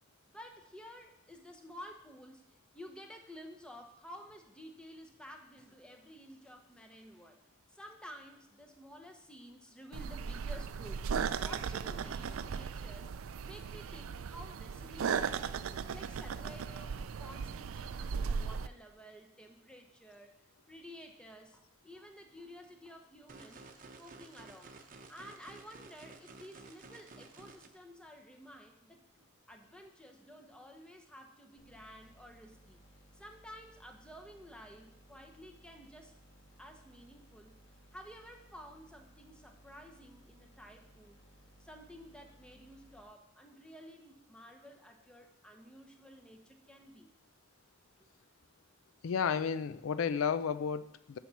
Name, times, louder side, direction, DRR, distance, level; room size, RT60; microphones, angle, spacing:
voice 1, 0.3-13.2 13.4-15.6 15.9-23.7 24.0-24.7 25.1-32.8 33.1-36.2 36.6-37.6 37.9-41.2 41.6-47.1, equal, 5° left, 3 dB, 0.9 m, -52 dB
sound 1, 9.9-18.7, right 6 dB, 90° right, 0.4 m, -37 dB
sound 2, 23.3-27.7, right 3 dB, 40° right, 0.9 m, -53 dB
sound 3, 31.6-43.0, right 1 dB, 35° left, 1.6 m, -61 dB
voice 2, 49.0-51.2, left 6 dB, 85° left, 13 dB, 0.4 m, -32 dB
7.3 x 5.7 x 7.1 m, 0.81 s
head